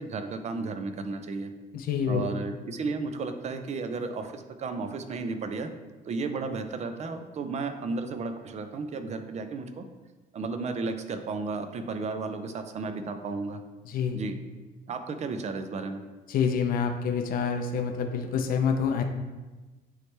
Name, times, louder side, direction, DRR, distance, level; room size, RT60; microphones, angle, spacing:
voice 1, 0.0-1.5 2.1-5.7 6.0-9.8 10.3-13.6 14.1-14.4 14.9-16.0, right 4 dB, 40° right, 7 dB, 0.6 m, -33 dB
voice 2, 1.7-2.3 13.9-14.2 16.3-19.0, left 6 dB, 60° left, 5 dB, 0.6 m, -27 dB
9.1 x 3.2 x 3.3 m, 1.2 s
cardioid pair, 110°, 17 cm